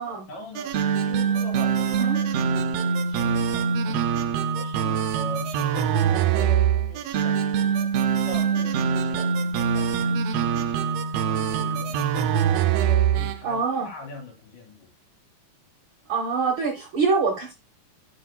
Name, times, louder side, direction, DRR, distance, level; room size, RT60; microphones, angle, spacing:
voice 1, 0.3-4.3 4.6-12.8 13.1-14.9, left 2 dB, 85° left, 4.4 m, -42 dB
sound 1, 0.6-13.4, right 7 dB, 80° right, 1.4 m, -23 dB
voice 2, 13.4-13.9 16.1-17.5, right 4 dB, 60° right, 1.4 m, -25 dB
10.0 x 6.0 x 2.2 m
omnidirectional pair, 3.6 m